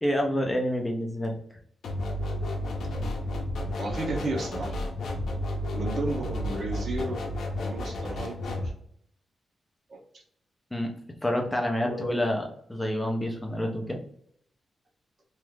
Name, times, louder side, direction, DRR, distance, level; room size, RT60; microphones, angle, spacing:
voice 1, 0.0-1.4 10.7-10.9 11.2-14.0, left 1 dB, 10° left, 2 dB, 0.6 m, -28 dB
sound 1, 1.8-8.7, left 1 dB, 70° left, 0.6 m, -32 dB
voice 2, 3.8-4.8 5.7-7.2 7.5-8.6 9.9-10.0 11.8-12.1, right 2 dB, 45° right, -1 dB, 0.8 m, -33 dB
3.0 x 2.4 x 3.2 m, 0.68 s
wide cardioid pair, 160°, 0 cm